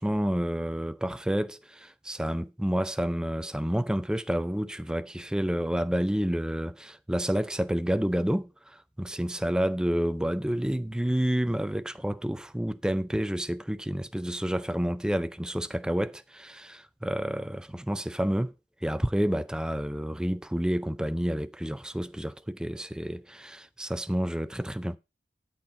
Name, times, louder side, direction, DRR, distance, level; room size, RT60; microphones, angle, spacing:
voice 1, 0.0-18.5 18.8-25.0, equal, 5° right, 0.4 m, -29 dB
12.5 x 4.3 x 5.2 m
head